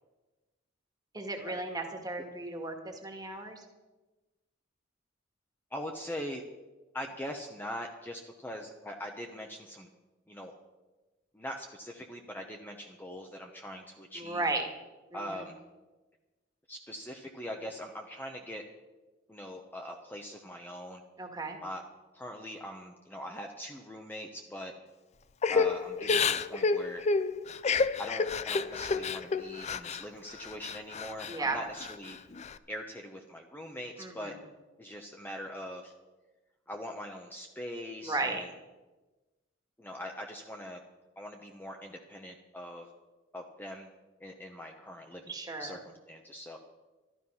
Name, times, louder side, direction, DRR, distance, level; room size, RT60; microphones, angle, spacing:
voice 1, 1.1-3.7 14.1-14.7 15.1-15.5 21.2-21.6 31.3-31.6 34.0-34.4 38.0-38.4 45.3-45.8, right 2 dB, 20° right, 3 dB, 1.8 m, -35 dB
voice 2, 5.7-6.4 6.9-9.9 10.3-10.5 11.3-14.4 15.1-15.6 16.7-18.6 19.3-21.0 21.6-21.8 22.1-24.7 25.5-27.0 28.0-32.2 32.7-34.3 34.8-35.9 36.7-38.5 39.8-40.8 41.2-42.9 43.3-43.9 44.2-45.3 45.6-46.6, equal, 10° left, 2 dB, 0.9 m, -42 dB
Crying sobbing / Breathing, 25.4-30.0 30.4-31.4 31.8-32.5, left 4 dB, 35° left, 0.4 m, -29 dB
12.5 x 12.0 x 5.6 m, 1.2 s
head